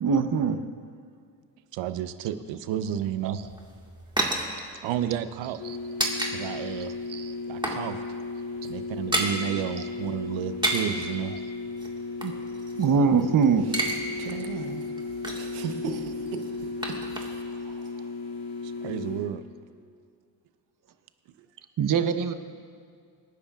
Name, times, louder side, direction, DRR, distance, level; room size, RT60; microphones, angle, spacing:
voice 1, 0.0-0.6 3.2-3.3 7.1-7.3 12.2-12.3 12.8-13.7 21.8-22.3, right 6 dB, 40° right, 9 dB, 0.9 m, -23 dB
voice 2, 1.7-3.4 4.8-5.6 6.3-6.9 7.5-8.0 8.6-11.3 18.6-19.4, right 10 dB, 70° right, 12 dB, 0.8 m, -31 dB
sound 1, 3.3-6.3 6.6-6.8 7.2-8.3 8.5-9.4 10.4-11.0 11.8-13.2 13.5-14.0 14.3-14.4 14.8-15.6 16.3-17.6 17.8-17.9, right 1 dB, 10° right, 1.7 m, -31 dB
sound 2, 5.6-19.2, left 4 dB, 45° left, 3.2 m, -35 dB
voice 3, 14.1-17.4, right 6 dB, 85° right, 6 dB, 1.2 m, -37 dB
25.5 x 10.0 x 2.4 m, 2.2 s
supercardioid pair, 75°, 48 cm